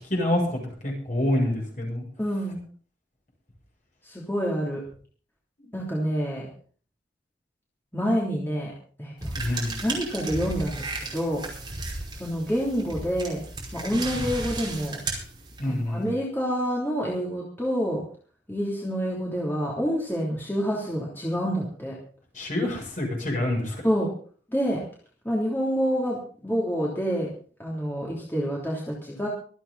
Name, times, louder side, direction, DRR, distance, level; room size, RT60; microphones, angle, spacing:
voice 1, 0.1-2.0 9.3-9.8 15.6-16.1 22.3-23.8, left 1 dB, 45° left, -1 dB, 7.5 m, -27 dB
voice 2, 2.2-2.6 4.0-4.8 5.7-6.4 7.9-8.7 9.0-11.4 12.2-13.4 13.7-15.0 15.9-18.0 18.5-21.9 23.8-24.1 24.5-24.8 25.2-27.3 27.6-29.3, equal, 10° left, -4 dB, 3.3 m, -27 dB
sound 1, 9.2-15.9, right 2 dB, 25° right, 5.2 m, -34 dB
25.0 x 9.0 x 4.2 m, 0.43 s
head